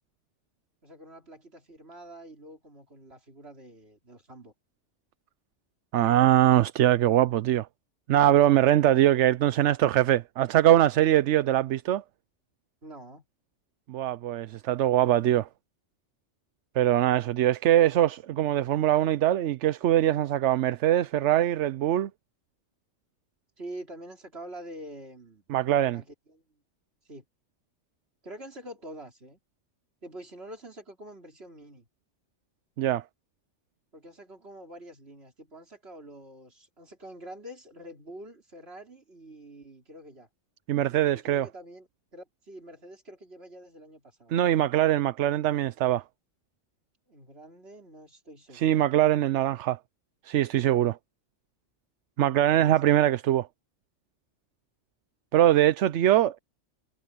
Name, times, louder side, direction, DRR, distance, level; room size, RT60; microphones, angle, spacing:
voice 1, 0.8-4.5 12.8-13.3 23.6-25.4 25.9-26.4 27.1-27.2 28.2-29.4 30.0-31.9 33.9-40.3 41.1-44.3 47.1-48.9 52.3-52.8, right 1 dB, 60° right, 4.3 m, -46 dB
voice 2, 5.9-7.7 8.1-12.0 13.9-15.5 16.8-22.1 25.5-26.0 32.8-33.0 40.7-41.5 44.3-46.0 48.5-49.8 50.2-51.0 52.2-53.5 55.3-56.4, right 12 dB, 80° right, 0.9 m, -22 dB
omnidirectional pair, 1.2 m